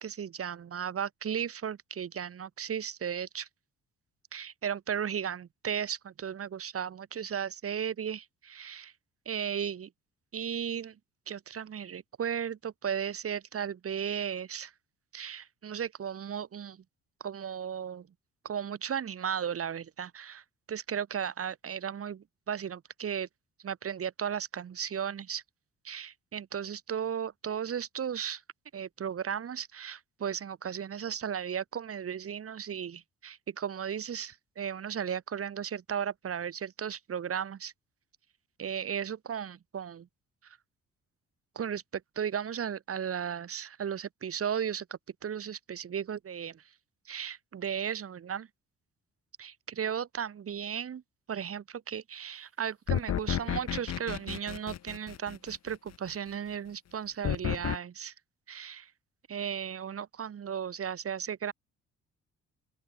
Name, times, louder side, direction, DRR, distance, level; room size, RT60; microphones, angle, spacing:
voice 1, 0.0-3.5 4.3-8.9 9.3-9.9 10.3-11.0 11.3-14.7 15.1-16.8 17.2-18.1 18.4-23.3 23.6-25.4 25.8-28.4 28.7-37.7 38.6-40.1 40.4-40.6 41.6-46.6 47.1-48.5 49.4-51.0 51.3-58.1 58.5-58.9 59.3-61.5, right 8 dB, 50° right, 2.1 m, -35 dB
sound 1, 52.9-55.7 57.2-57.8, left 10 dB, 60° left, 1.8 m, -32 dB
open air
cardioid pair, 90°, 30 cm